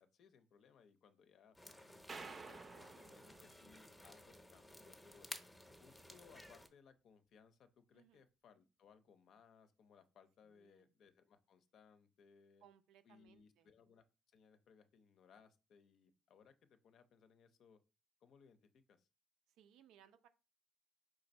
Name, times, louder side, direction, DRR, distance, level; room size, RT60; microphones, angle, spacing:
voice 1, 0.0-1.6 2.1-5.3 5.8-12.6 13.0-14.0 14.3-17.8 18.2-19.1, left 6 dB, 60° left, 10 dB, 0.5 m, -66 dB
sound 1, 1.5-6.7, left 1 dB, 10° left, 0.7 m, -55 dB
sound 2, 2.1-4.4, right 4 dB, 30° right, 0.6 m, -53 dB
voice 2, 7.9-8.3 10.5-10.9 12.6-13.7 19.6-20.3, right 9 dB, 75° right, 10 dB, 0.5 m, -67 dB
4.7 x 2.6 x 4.1 m, 0.32 s
cardioid pair, 110°, 0 cm